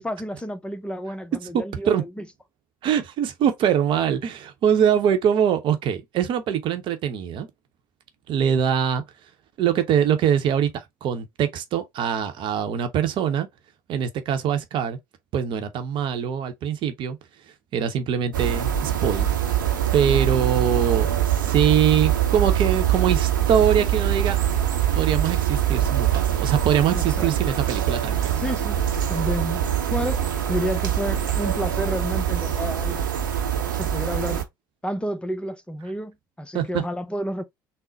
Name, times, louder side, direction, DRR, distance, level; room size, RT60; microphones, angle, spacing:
voice 1, 0.0-2.3 26.9-27.3 28.4-28.8 29.1-29.6 29.9-33.1 33.8-34.4 34.8-37.4, equal, 10° left, 0.7 m, -30 dB
voice 2, 1.5-2.0 2.8-7.5 8.3-9.0 9.6-13.5 13.9-15.0 15.3-17.2 17.7-19.3 19.9-24.4 24.9-28.4 36.5-36.8, right 8 dB, 50° right, 0.8 m, -23 dB
sound 1, 18.3-34.4, right 10 dB, 85° right, 0.7 m, -23 dB
3.8 x 2.1 x 3.8 m
hypercardioid pair, 65°, 10 cm